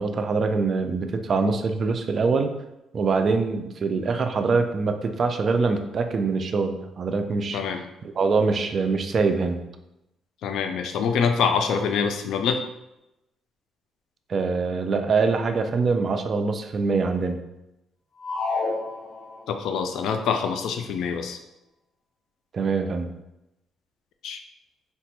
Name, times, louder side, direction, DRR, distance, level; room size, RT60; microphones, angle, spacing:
voice 1, 0.0-2.5 2.9-7.6 8.0-9.6 14.3-17.4 22.5-23.1, right 4 dB, 50° right, 7 dB, 0.3 m, -24 dB
voice 2, 7.5-7.8 10.4-12.6 19.5-21.4 24.2-24.4, left 6 dB, 80° left, 7 dB, 0.3 m, -25 dB
sound 1, 18.2-19.7, left 3 dB, 45° left, 0.6 m, -29 dB
3.9 x 2.1 x 2.9 m, 0.91 s
cardioid pair, 90°, 0 cm